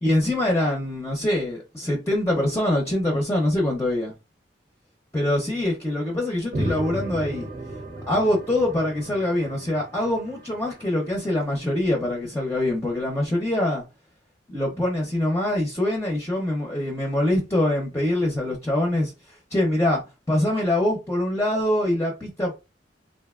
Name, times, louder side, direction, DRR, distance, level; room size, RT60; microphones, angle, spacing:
voice 1, 0.0-4.1 5.1-7.5 8.1-13.8 14.5-20.0 20.3-22.5, left 1 dB, 15° left, 0.7 m, -24 dB
sound 1, 6.5-11.2, right 1 dB, 80° right, 1.1 m, -34 dB
3.3 x 2.5 x 2.4 m
head